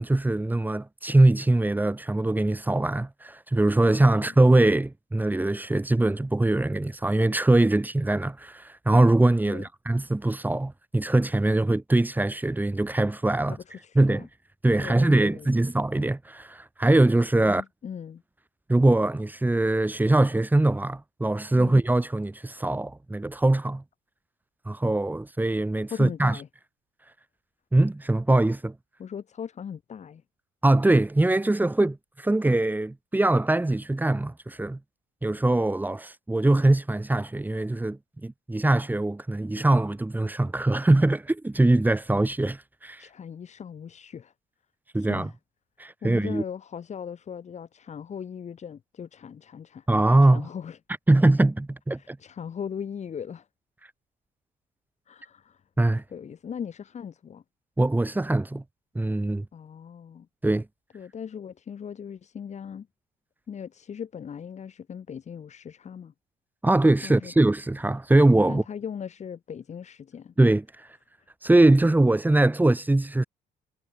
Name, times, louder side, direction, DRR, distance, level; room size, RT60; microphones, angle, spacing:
voice 1, 0.0-13.6 13.9-14.3 14.6-17.6 18.7-23.8 24.6-26.4 27.7-28.7 30.6-34.8 35.2-43.0 44.9-45.3 45.8-46.4 49.9-50.5 51.1-52.2 55.8-56.0 57.8-58.6 58.9-59.4 60.4-60.6 66.6-68.6 70.4-70.9 71.4-73.2, right 2 dB, 10° right, 5.1 m, -22 dB
voice 2, 13.5-14.3 14.8-15.7 17.4-18.2 21.6-21.8 25.9-26.5 29.0-30.2 43.0-44.3 44.9-45.3 46.0-49.9 50.2-50.8 51.9-53.5 55.1-55.6 56.1-57.4 59.5-60.3 60.9-62.9 63.5-66.1 67.0-67.3 68.5-70.3, left 7 dB, 40° left, 7.7 m, -39 dB
cardioid pair, 110°, 17 cm